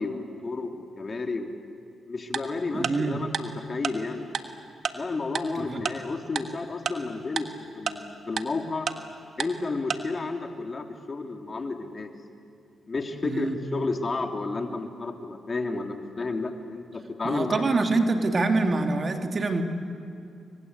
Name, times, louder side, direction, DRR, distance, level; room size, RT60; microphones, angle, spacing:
voice 1, 0.0-1.5 2.1-4.3 4.9-7.5 7.7-8.9 9.4-12.1 12.9-17.8, left 3 dB, 45° left, 3 dB, 3.2 m, -32 dB
Tick-tock, 2.3-2.4 2.8-2.9 3.3-3.4 3.8-3.9 4.3-4.4 4.8-4.9 5.3-5.4 5.8-5.9 6.3-6.4 6.8-6.9 7.4-7.5 7.9-8.0 8.4-8.5 8.9-9.0 9.4-9.5 9.9-10.0, right 7 dB, 65° right, 1.5 m, -28 dB
voice 2, 2.7-3.2 5.5-5.8 13.2-13.6 17.2-19.6, right 3 dB, 50° right, 4 dB, 3.0 m, -25 dB
29.5 x 23.5 x 8.3 m, 2.7 s
supercardioid pair, 50°, 0 cm